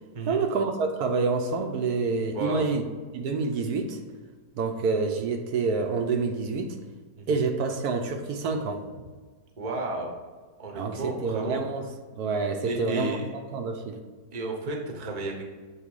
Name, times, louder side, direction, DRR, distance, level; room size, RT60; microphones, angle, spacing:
voice 1, 0.3-2.8 3.1-4.0 4.6-6.8 7.3-8.8 10.8-11.9 12.2-13.2 13.5-14.0, right 4 dB, 75° right, 4 dB, 1.2 m, -27 dB
voice 2, 2.3-2.7 7.2-7.4 9.6-10.1 10.6-11.6 12.6-13.3 14.3-15.4, right 2 dB, 30° right, 0 dB, 0.8 m, -32 dB
8.0 x 3.1 x 4.6 m, 1.4 s
omnidirectional pair, 1.7 m